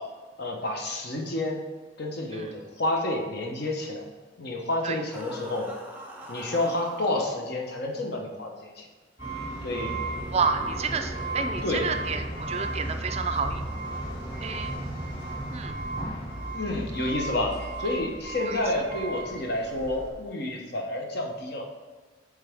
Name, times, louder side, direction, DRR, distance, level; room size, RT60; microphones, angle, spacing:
voice 1, 0.4-1.6 2.0-4.0 4.4-5.7 6.3-8.9 9.6-10.0 11.6-11.8 16.5-17.5 17.8-21.6, left 1 dB, 60° left, 1 dB, 1.0 m, -29 dB
sound 1, 5.1-7.3, equal, 10° right, 0.7 m, -42 dB
sound 2, 9.2-20.1, right 1 dB, 25° left, 1.9 m, -34 dB
voice 2, 10.3-13.6 14.4-14.8 15.5-15.8 18.5-18.6, right 5 dB, 35° right, 7 dB, 0.4 m, -30 dB
8.0 x 3.5 x 3.5 m, 1.4 s
head